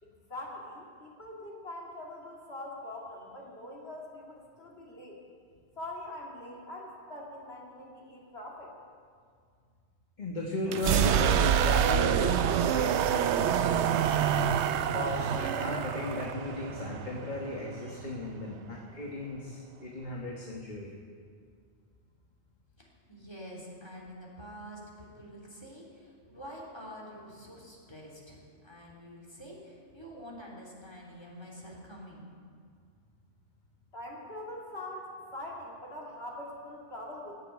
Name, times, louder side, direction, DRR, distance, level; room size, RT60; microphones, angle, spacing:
voice 1, 0.0-5.2 5.8-8.7 33.9-37.4, left 1 dB, 60° left, -3 dB, 2.4 m, -43 dB
voice 2, 10.2-14.2 14.9-20.9, left 2 dB, 40° left, -2 dB, 1.5 m, -36 dB
sound 1, 10.7-18.4, right 9 dB, 75° right, 0.9 m, -27 dB
voice 3, 22.8-32.3, equal, 20° left, -4 dB, 3.2 m, -47 dB
17.0 x 7.5 x 9.2 m, 2.1 s
omnidirectional pair, 1.2 m